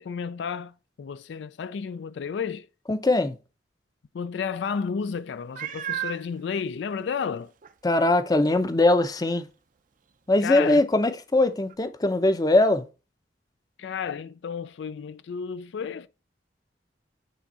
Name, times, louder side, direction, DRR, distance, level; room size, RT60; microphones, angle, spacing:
voice 1, 0.0-2.7 4.1-7.5 10.4-10.8 13.8-16.1, left 6 dB, 75° left, 0.3 m, -32 dB
voice 2, 2.9-3.3 7.8-9.4 10.3-12.8, left 2 dB, 20° left, 0.5 m, -21 dB
Meow, 5.6-6.3 7.0-7.1 7.6-7.7 11.7-11.8, right 11 dB, 45° right, 0.5 m, -32 dB
8.5 x 3.5 x 4.1 m
head